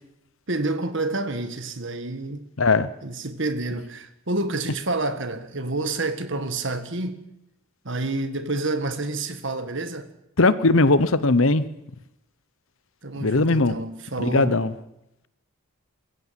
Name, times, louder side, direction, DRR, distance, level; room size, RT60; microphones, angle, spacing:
voice 1, 0.5-2.4 3.0-7.2 7.9-10.1 13.0-14.6, right 2 dB, 55° right, 1.7 m, -28 dB
voice 2, 2.6-2.9 10.4-11.6 13.2-13.7 14.2-14.7, left 3 dB, 65° left, 1.0 m, -19 dB
22.5 x 15.5 x 7.6 m
head